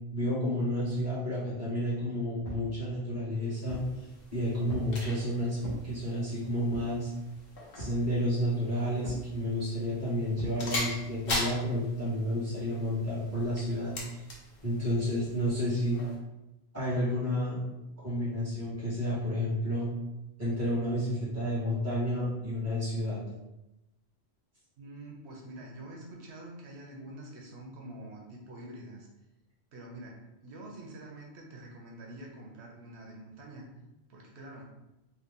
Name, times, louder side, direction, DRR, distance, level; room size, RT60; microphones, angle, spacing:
voice 1, 0.1-3.8 4.3-5.6 5.8-7.1 7.7-13.9 14.6-16.0 16.7-17.6 18.0-19.9 20.4-23.2, equal, 15° right, -10 dB, 1.5 m, -31 dB
sound 1, 2.4-2.7 3.3-3.9 4.7-5.0 5.6-5.9 6.7-7.0 7.8-8.1 9.0-9.3 10.4-10.6, equal, 40° left, 1.0 m, -40 dB
sound 2, 3.7-16.2, left 2 dB, 65° left, 1.0 m, -41 dB
voice 2, 24.8-29.1 29.7-33.7 34.1-34.6, right 1 dB, 85° right, -1 dB, 0.9 m, -46 dB
3.1 x 2.3 x 3.6 m, 0.94 s
omnidirectional pair, 1.1 m